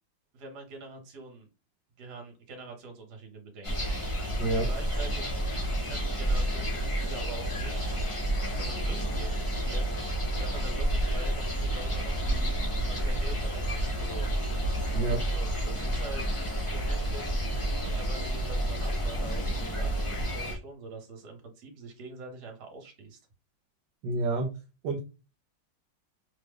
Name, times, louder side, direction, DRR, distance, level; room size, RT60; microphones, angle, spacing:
voice 1, 0.3-1.5 2.0-4.0 4.5-5.3 5.8-8.0 8.6-10.0 10.4-12.5 12.9-14.3 15.3-16.3 16.6-17.4 17.9-23.2, right 3 dB, 60° right, 3 dB, 1.4 m, -44 dB
sound 1, 3.6-20.5, right 1 dB, 50° left, 0.3 m, -30 dB
voice 2, 4.4-4.7 14.9-15.2 17.9-18.0 24.0-24.5 24.8-25.0, right 2 dB, 75° right, 4 dB, 1.2 m, -28 dB
3.3 x 2.0 x 3.5 m, 0.30 s
omnidirectional pair, 2.2 m